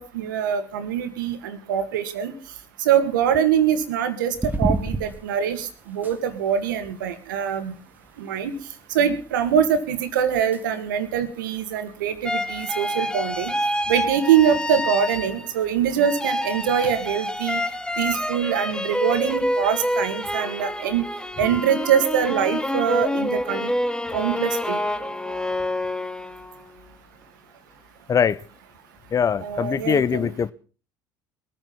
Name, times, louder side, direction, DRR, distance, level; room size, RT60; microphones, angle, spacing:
voice 1, 0.0-2.3 2.8-7.7 8.2-8.5 8.9-13.5 13.9-17.6 18.0-21.1 21.4-23.7 24.1-24.8 29.4-30.3, right 8 dB, 75° right, 2.0 m, -23 dB
sound 1, 4.3-20.4, right 2 dB, 15° right, 2.0 m, -37 dB
sound 2, 12.2-15.7 16.0-26.6, left 1 dB, 5° left, 1.3 m, -27 dB
voice 2, 28.1-28.4 29.1-30.5, left 7 dB, 30° left, 0.7 m, -22 dB
21.5 x 8.9 x 5.8 m
hypercardioid pair, 65°, 11 cm